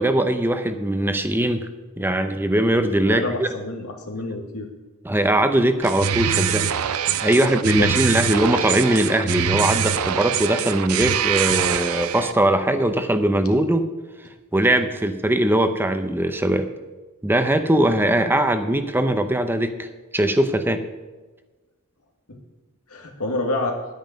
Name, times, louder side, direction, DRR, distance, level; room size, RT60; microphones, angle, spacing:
voice 1, 0.0-1.7 2.0-3.5 5.0-6.7 7.2-13.8 14.5-16.7 17.2-19.9 20.1-20.8, right 1 dB, 10° right, 8 dB, 0.7 m, -20 dB
voice 2, 3.1-4.7 7.3-7.5 7.8-7.9 14.7-14.9 22.3-22.4 22.9-23.8, left 2 dB, 90° left, 3 dB, 2.0 m, -28 dB
sound 1, 5.8-12.3, right 8 dB, 80° right, 0.6 m, -24 dB
11.0 x 9.3 x 5.2 m, 1.2 s
head